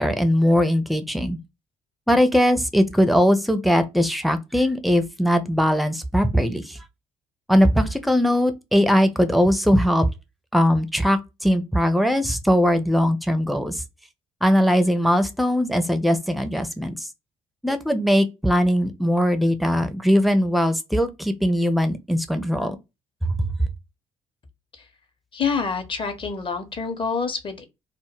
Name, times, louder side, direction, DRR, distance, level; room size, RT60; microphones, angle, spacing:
voice 1, 0.0-1.4 2.1-6.8 7.5-10.1 10.5-13.8 14.4-16.9 17.6-22.8 23.2-23.5, equal, ahead, 0.4 m, -20 dB
voice 2, 25.3-27.7, left 5 dB, 30° left, 0.7 m, -27 dB
2.1 x 2.1 x 3.1 m
figure-of-eight pair, 45°, 17 cm